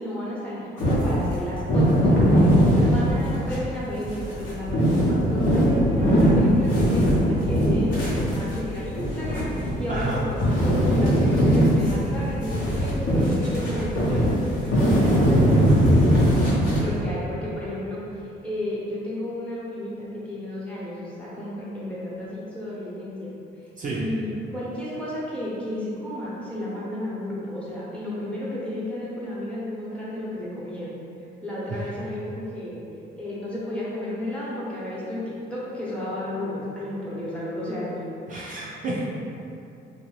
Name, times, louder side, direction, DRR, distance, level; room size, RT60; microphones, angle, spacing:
voice 1, 0.0-2.6 2.8-16.2 16.8-23.3 23.9-31.0 31.4-32.8 33.2-38.0, left 1 dB, 5° left, -8 dB, 0.8 m, -33 dB
sound 1, 0.8-3.6 4.0-10.1 10.4-17.0, equal, 75° left, 0.8 m, -20 dB
voice 2, 9.9-10.2 23.8-24.0 38.3-39.1, right 2 dB, 40° right, -6 dB, 0.5 m, -30 dB
2.6 x 2.1 x 3.1 m, 2.6 s
cardioid pair, 90°, 20 cm